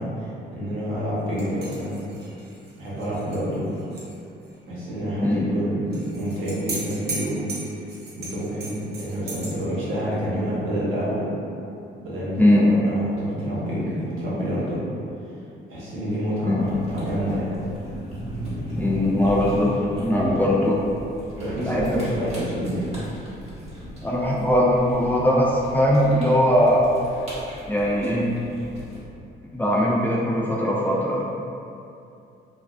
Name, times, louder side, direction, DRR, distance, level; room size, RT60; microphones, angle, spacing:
voice 1, 0.0-2.0 2.8-3.7 4.7-7.5 8.2-11.3 12.0-14.8 15.7-17.6 20.1-20.4 21.4-22.9, equal, 85° right, -8 dB, 0.8 m, -28 dB
sound 1, 1.4-4.2 4.4-4.5 5.9-9.5, right 3 dB, 55° right, 0.6 m, -37 dB
sound 2, 16.6-29.0, equal, 35° right, 1.0 m, -36 dB
voice 2, 18.8-20.7 21.7-22.0 24.0-26.8 27.7-28.3 29.5-31.2, equal, 10° left, -5 dB, 0.3 m, -20 dB
2.3 x 2.3 x 2.2 m, 2.6 s
cardioid pair, 90°, 20 cm